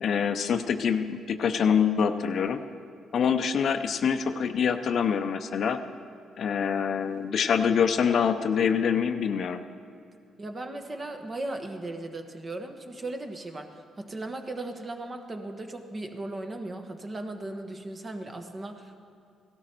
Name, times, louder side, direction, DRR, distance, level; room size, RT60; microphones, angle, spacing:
voice 1, 0.0-2.6 3.1-5.8 6.4-9.6, left 7 dB, 60° left, 9 dB, 0.6 m, -25 dB
voice 2, 10.4-18.9, right 2 dB, 30° right, 5 dB, 1.3 m, -37 dB
16.5 x 13.0 x 4.5 m, 2.4 s
cardioid pair, 90°, 0 cm